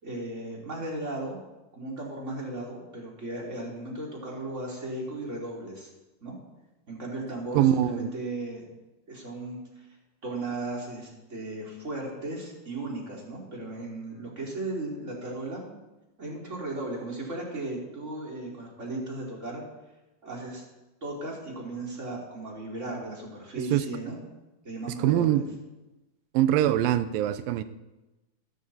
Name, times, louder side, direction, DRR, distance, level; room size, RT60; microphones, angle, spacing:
voice 1, 0.0-1.4 1.7-5.9 6.2-6.4 6.9-8.6 9.1-9.9 10.2-15.7 16.2-19.6 20.2-20.6 21.0-24.1 24.6-25.4, right 2 dB, 20° right, -2 dB, 3.2 m, -36 dB
voice 2, 7.5-8.1 23.7-23.9 25.0-25.5 26.3-27.6, right 12 dB, 75° right, 12 dB, 2.3 m, -23 dB
15.5 x 13.0 x 4.3 m, 1.0 s
omnidirectional pair, 4.4 m